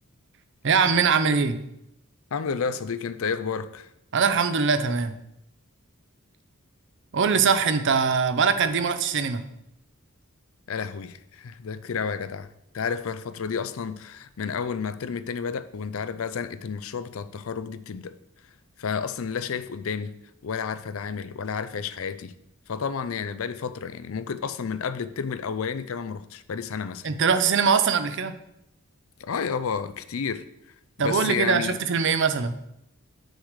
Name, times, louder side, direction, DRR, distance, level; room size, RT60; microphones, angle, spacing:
voice 1, 0.6-1.6 4.1-5.2 7.1-9.5 27.0-28.3 31.0-32.5, right 5 dB, 55° right, 0.6 m, -22 dB
voice 2, 2.3-3.9 10.7-18.2 18.8-20.1 20.4-22.3 22.7-27.1 29.2-30.4 31.0-31.8, left 6 dB, 65° left, 0.4 m, -31 dB
6.4 x 4.8 x 6.5 m
head